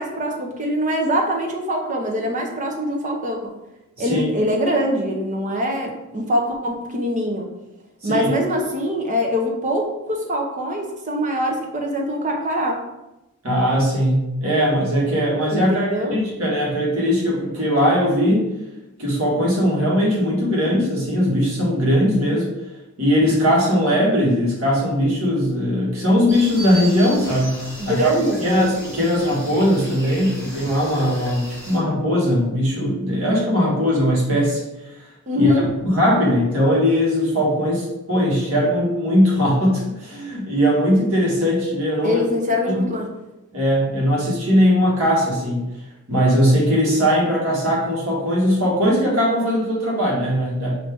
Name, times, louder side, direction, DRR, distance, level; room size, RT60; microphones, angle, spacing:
voice 1, 0.0-3.5 4.0-7.5 8.0-12.8 15.5-16.1 27.8-28.7 35.3-35.7 42.0-43.1, equal, 35° right, 1 dB, 0.7 m, -23 dB
voice 2, 13.4-18.5 19.0-22.5 23.0-27.6 27.9-28.1 28.4-34.6 35.4-35.5 35.8-42.2 42.8-42.9 43.5-45.6 46.1-50.7, equal, 80° right, -4 dB, 1.6 m, -19 dB
sound 1, 26.3-31.8, equal, 15° right, 1.5 m, -34 dB
5.3 x 2.8 x 3.5 m, 0.96 s
head